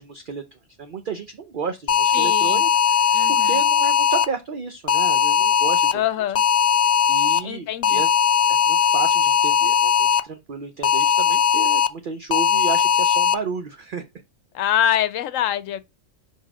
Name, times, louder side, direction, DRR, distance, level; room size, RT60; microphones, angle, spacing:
voice 1, 0.0-6.0 7.1-8.1 8.5-14.0, right 5 dB, 50° right, 0.8 m, -32 dB
sound 1, 1.9-4.3 4.9-5.9 6.3-7.4 7.8-10.2 10.8-11.9 12.3-13.3, left 8 dB, 45° left, 0.6 m, -18 dB
voice 2, 2.1-2.6 3.1-3.6 5.9-6.4 7.4-8.0 14.5-15.8, left 11 dB, 85° left, 1.0 m, -24 dB
5.5 x 5.3 x 4.9 m
omnidirectional pair, 1.3 m